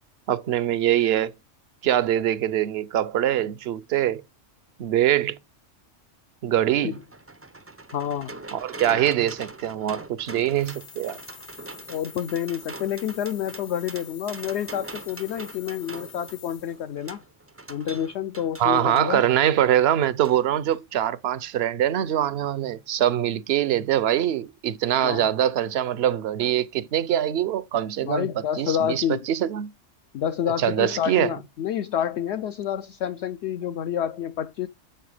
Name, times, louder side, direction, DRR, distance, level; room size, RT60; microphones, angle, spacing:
voice 1, 0.3-1.3 1.8-4.2 4.8-5.4 6.4-7.0 8.5-11.2 18.6-29.7 30.5-31.3, right 11 dB, 60° right, 0.8 m, -23 dB
sound 1, 6.9-19.1 20.2-20.4 20.7-20.8, right 2 dB, 20° right, 0.4 m, -42 dB
voice 2, 7.9-8.3 11.9-17.2 17.7-19.2 25.0-25.3 28.0-29.2 30.1-34.7, left 9 dB, 65° left, 0.8 m, -28 dB
sound 2, 10.5-17.0, left 7 dB, 85° left, 1.5 m, -47 dB
7.7 x 5.7 x 4.9 m
omnidirectional pair, 1.3 m